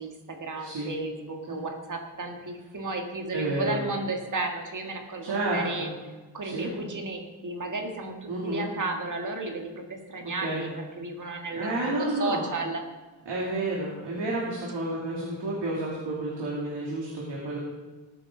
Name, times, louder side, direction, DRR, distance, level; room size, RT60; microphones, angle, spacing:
voice 1, 0.0-5.9 6.3-10.7 11.0-12.8, right 3 dB, 40° right, 3 dB, 1.7 m, -33 dB
voice 2, 0.6-0.9 1.5-1.6 3.3-3.8 5.2-5.9 6.4-6.7 8.3-8.7 10.2-10.7 11.6-12.4 13.3-17.6, right 1 dB, 60° right, -5 dB, 2.9 m, -30 dB
19.0 x 9.8 x 3.8 m, 1.3 s
wide cardioid pair, 160°, 47 cm